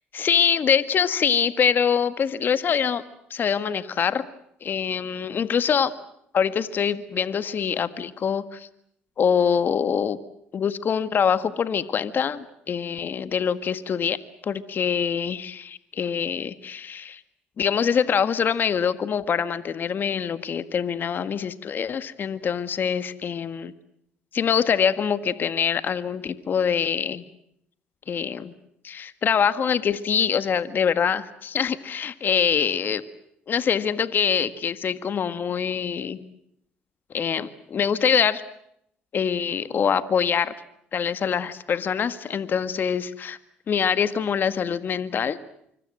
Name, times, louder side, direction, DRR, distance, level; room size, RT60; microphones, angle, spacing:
voice 1, 0.1-3.0 3.3-4.2 4.6-5.9 6.3-8.7 9.2-10.2 10.5-14.2 14.4-17.2 17.6-23.7 24.3-27.2 28.1-28.5 28.8-33.0 33.5-36.2 37.1-38.4 39.1-40.5 40.9-43.4 43.7-45.4, left 7 dB, 50° left, 13 dB, 1.7 m, -24 dB
25.5 x 24.5 x 7.7 m, 0.73 s
supercardioid pair, 65°, 4 cm